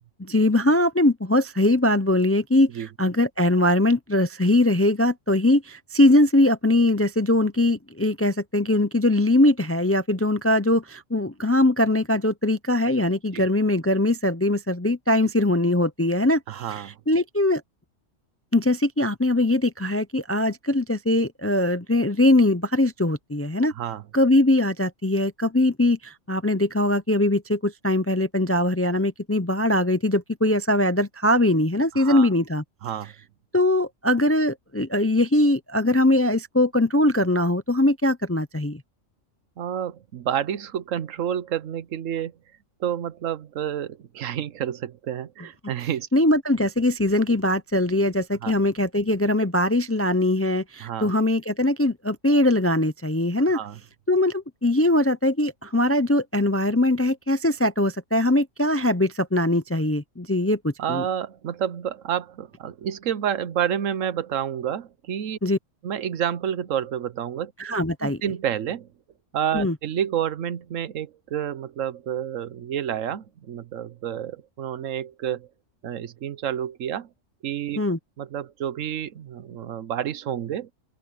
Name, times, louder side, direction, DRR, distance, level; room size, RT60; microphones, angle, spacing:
voice 1, 0.2-17.6 18.5-23.7 24.1-32.6 33.5-38.8 46.1-53.6 54.1-61.1 65.4-65.6 67.6-68.2 69.5-69.8 77.8-78.0, left 1 dB, 20° left, 0.4 m, -21 dB
voice 2, 16.5-17.0 23.7-24.0 31.9-32.3 32.8-33.1 39.6-42.3 42.8-46.1 48.4-48.5 50.8-51.1 53.5-53.8 60.8-65.4 65.8-68.9 69.3-75.5 75.8-77.1 77.4-77.8 78.2-80.7, right 9 dB, 80° right, 1.2 m, -29 dB
open air
omnidirectional pair, 1.3 m